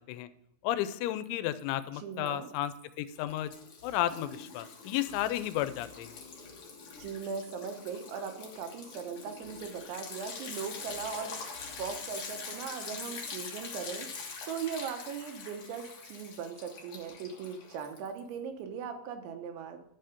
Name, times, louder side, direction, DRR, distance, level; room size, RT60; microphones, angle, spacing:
voice 1, 0.6-3.5 3.8-6.2, left 13 dB, 90° left, 13 dB, 3.0 m, -33 dB
Liquid, 1.2-1.8 2.1-18.3, left 5 dB, 70° left, 1.3 m, -44 dB
voice 2, 1.9-2.5 7.0-11.4 11.8-14.1 14.5-19.8, right 6 dB, 80° right, 6 dB, 3.3 m, -39 dB
11.5 x 5.7 x 5.2 m, 0.79 s
omnidirectional pair, 5.3 m